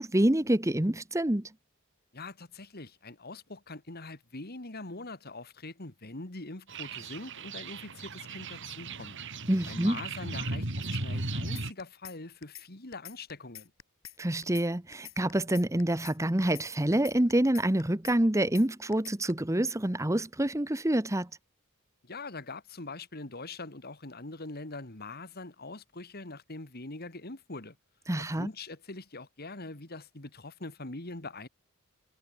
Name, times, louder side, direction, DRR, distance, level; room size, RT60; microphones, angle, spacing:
voice 1, 0.0-1.5 9.5-10.0 14.2-21.3 28.1-28.5, right 1 dB, 15° right, 1.0 m, -27 dB
voice 2, 2.1-9.2 9.7-13.7 22.0-27.8 28.2-31.5, left 2 dB, 45° left, 2.6 m, -43 dB
sound 1, 6.7-11.7, right 2 dB, 55° right, 3.9 m, -36 dB
sound 2, 11.6-12.2 12.4-12.7 12.9-14.2 14.4-14.7 14.9-16.2 16.4-16.7 16.9-18.2 18.4-18.7 18.9-19.3, left 13 dB, 70° left, 6.4 m, -46 dB
head